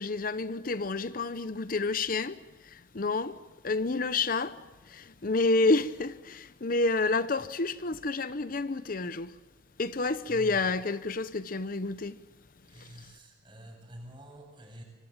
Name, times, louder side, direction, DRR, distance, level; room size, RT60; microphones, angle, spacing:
voice 1, 0.0-2.4 2.9-3.4 3.6-4.6 4.9-9.3 9.8-12.2, left 3 dB, 55° left, 0.8 m, -29 dB
voice 2, 10.3-10.7 12.7-14.8, right 1 dB, 30° right, 8.0 m, -48 dB
26.0 x 25.0 x 7.4 m
head